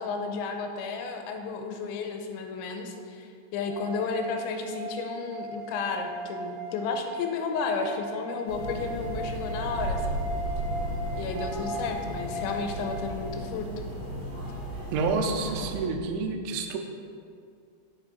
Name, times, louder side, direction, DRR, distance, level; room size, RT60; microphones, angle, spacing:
voice 1, 0.0-10.2 11.2-13.7, left 4 dB, 90° left, 4 dB, 3.0 m, -33 dB
sound 1, 3.6-12.9, right 1 dB, 65° right, 1.5 m, -38 dB
sound 2, 8.5-15.8, right 1 dB, 45° right, 2.1 m, -34 dB
voice 2, 14.9-16.8, right 4 dB, 90° right, 4 dB, 3.1 m, -28 dB
8.2 x 5.5 x 4.0 m, 2.3 s
omnidirectional pair, 5.3 m